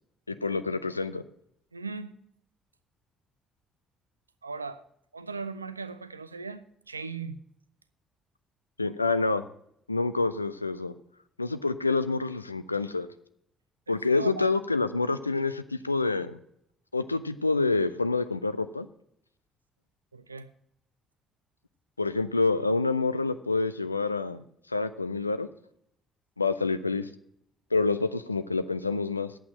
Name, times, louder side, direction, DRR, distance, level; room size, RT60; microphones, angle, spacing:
voice 1, 0.3-1.2 8.8-9.4 9.9-10.9 11.4-13.1 13.9-16.4 16.9-18.9 22.0-24.4 24.7-25.5 26.4-27.1 27.7-29.3, left 3 dB, 90° left, 0.4 m, -27 dB
voice 2, 1.7-2.1 4.4-4.8 5.1-7.4 13.9-14.5 20.1-20.5, right 4 dB, 90° right, 0.4 m, -38 dB
9.1 x 8.5 x 7.6 m
figure-of-eight pair, 45°, 0 cm